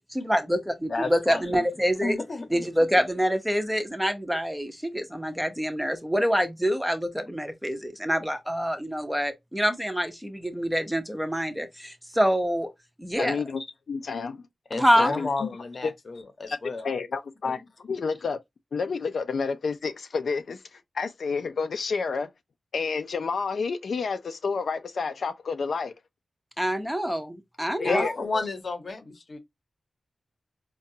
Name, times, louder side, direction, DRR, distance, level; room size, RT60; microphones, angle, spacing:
voice 1, 0.1-2.2 2.5-12.7 13.0-13.4 14.8-15.2 26.6-28.1, equal, 5° right, 0.5 m, -26 dB
voice 2, 0.9-1.6 2.0-2.7 14.7-16.9 27.8-29.4, left 3 dB, 45° left, 0.7 m, -32 dB
voice 3, 13.2-13.6 13.9-14.4 15.0-15.5 15.8-15.9 16.5-16.6 16.8-18.4 18.7-22.3 22.7-25.9 27.8-28.1, left 5 dB, 65° left, 0.3 m, -29 dB
4.7 x 2.2 x 2.6 m
wide cardioid pair, 175°, 0 cm